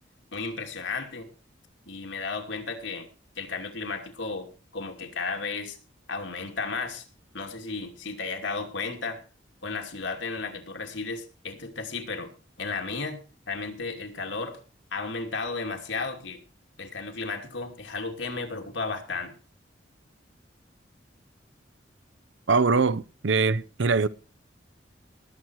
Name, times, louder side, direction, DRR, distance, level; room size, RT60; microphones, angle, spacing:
voice 1, 0.3-1.3 1.9-3.1 3.4-5.8 6.1-7.1 7.3-9.2 9.6-12.3 12.6-14.6 14.9-16.4 16.8-19.4, left 4 dB, 80° left, 2.7 m, -34 dB
voice 2, 22.5-24.1, right 4 dB, 80° right, 0.7 m, -23 dB
19.5 x 7.8 x 4.6 m
head